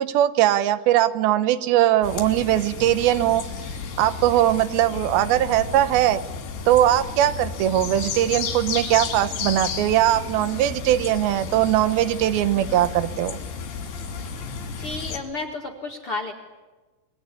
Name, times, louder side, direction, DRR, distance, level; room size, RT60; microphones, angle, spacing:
voice 1, 0.0-3.4 4.0-6.2 6.7-13.4, right 13 dB, 70° right, 12 dB, 2.7 m, -20 dB
sound 1, 2.0-15.2, left 5 dB, 80° left, 5.2 m, -33 dB
voice 2, 14.8-16.3, left 3 dB, 40° left, 2 dB, 2.2 m, -31 dB
25.5 x 23.0 x 9.9 m, 1.2 s
omnidirectional pair, 5.0 m